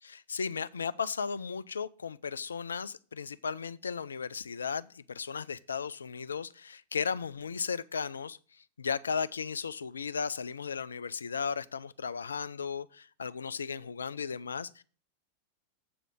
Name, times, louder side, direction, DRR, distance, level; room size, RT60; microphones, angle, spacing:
voice 1, 0.0-8.4 8.8-14.8, left 6 dB, 70° left, 0.3 m, -35 dB
7.8 x 4.9 x 7.2 m
figure-of-eight pair, 90°, 0 cm